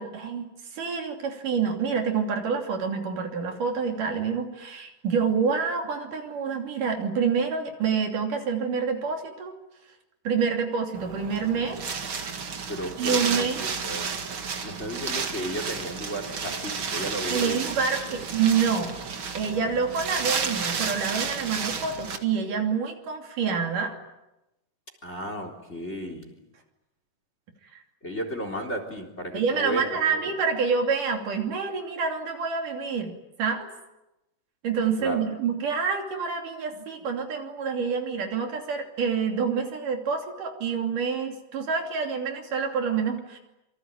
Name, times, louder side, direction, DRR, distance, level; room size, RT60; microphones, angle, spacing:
voice 1, 0.0-9.5 10.2-11.8 13.0-13.6 17.3-19.0 19.3-24.0 27.7-27.8 29.3-33.1 33.4-33.7 34.6-43.4, right 6 dB, 70° right, 3 dB, 4.4 m, -27 dB
Wind, 10.9-22.2, right 5 dB, 45° right, 2.4 m, -32 dB
voice 2, 12.7-14.1 14.6-17.6 18.1-18.3 25.0-26.4 28.0-30.4 35.0-35.2, equal, 20° left, 5 dB, 3.8 m, -34 dB
26.5 x 24.5 x 9.0 m, 0.95 s
omnidirectional pair, 3.8 m